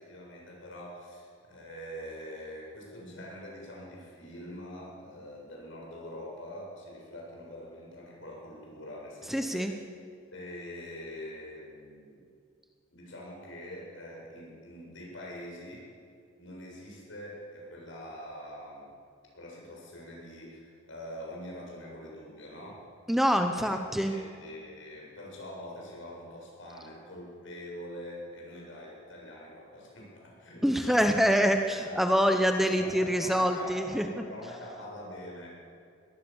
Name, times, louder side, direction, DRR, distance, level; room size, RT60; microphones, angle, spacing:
voice 1, 0.0-9.7 10.3-12.2 12.9-15.9 16.4-18.9 19.3-22.9 23.6-23.8 24.0-31.4 31.9-32.3 32.6-35.5, left 1 dB, 75° left, -3 dB, 7.9 m, -44 dB
voice 2, 9.3-9.7 23.1-24.2 30.6-34.0, equal, ahead, 5 dB, 0.9 m, -25 dB
23.0 x 18.5 x 7.3 m, 2.3 s
head